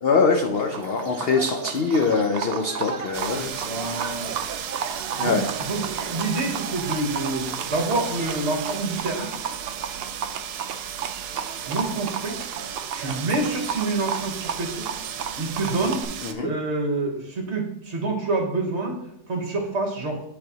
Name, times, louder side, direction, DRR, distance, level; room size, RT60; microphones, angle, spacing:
voice 1, 0.0-3.8 5.2-5.4 16.2-16.5, left 4 dB, 65° left, 3 dB, 0.5 m, -23 dB
Livestock farm animals working animals, 0.5-16.0, right 7 dB, 70° right, 0.5 m, -34 dB
sound 1, 3.1-16.3, right 9 dB, 85° right, 1.1 m, -35 dB
voice 2, 3.4-4.3 5.2-5.4 5.7-9.3 11.7-12.4 12.9-14.9 15.4-16.0 16.4-19.0 19.3-20.2, right 2 dB, 50° right, 1 dB, 1.3 m, -27 dB
10.5 x 4.1 x 2.9 m, 0.79 s
omnidirectional pair, 1.6 m